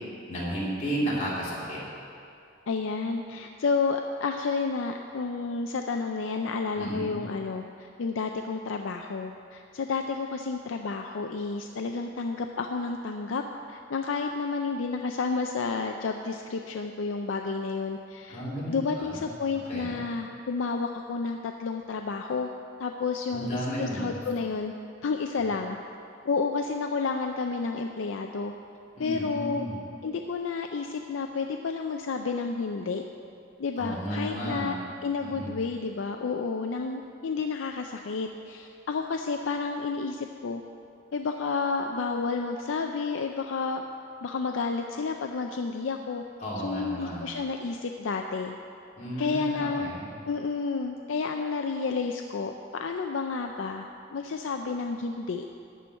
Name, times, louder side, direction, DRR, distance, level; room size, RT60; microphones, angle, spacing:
voice 1, 0.3-1.8 6.7-7.2 18.3-20.0 23.3-24.2 29.0-29.8 33.8-34.8 35.2-35.6 46.4-47.3 49.0-50.1, right 1 dB, 40° left, -7 dB, 2.9 m, -33 dB
voice 2, 2.7-13.4 13.7-18.4 18.7-22.5 22.8-24.7 25.0-25.8 26.3-28.5 29.0-29.7 30.0-33.0 33.6-34.8 35.0-40.6 41.1-43.8 44.2-46.2 46.6-48.5 49.2-49.9 50.3-55.4, left 4 dB, 75° left, 4 dB, 0.4 m, -31 dB
11.5 x 4.5 x 8.3 m, 2.5 s
head